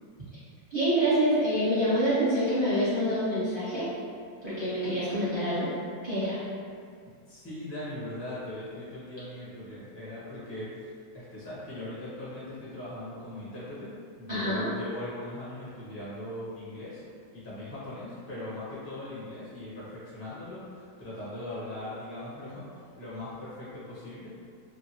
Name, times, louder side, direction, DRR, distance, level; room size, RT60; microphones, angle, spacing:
voice 1, 0.7-3.9 4.4-5.7 6.0-6.4 14.3-14.7, equal, 20° right, -13 dB, 1.0 m, -26 dB
voice 2, 7.3-10.7 11.1-17.0 17.3-24.5, left 1 dB, 15° left, -10 dB, 0.5 m, -40 dB
2.8 x 2.6 x 2.9 m, 2.2 s
omnidirectional pair, 1.8 m